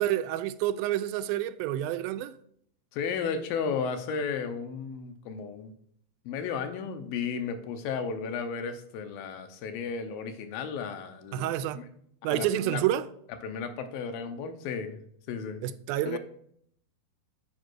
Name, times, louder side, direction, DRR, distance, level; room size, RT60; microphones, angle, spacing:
voice 1, 0.0-2.4 11.3-11.8 12.2-13.1 15.6-16.2, right 12 dB, 90° right, 2.4 m, -28 dB
voice 2, 2.9-5.7 6.3-11.9 12.3-12.8 13.4-15.0 15.3-15.6 16.0-16.2, left 6 dB, 80° left, 2.7 m, -34 dB
7.8 x 5.6 x 6.2 m
omnidirectional pair, 4.1 m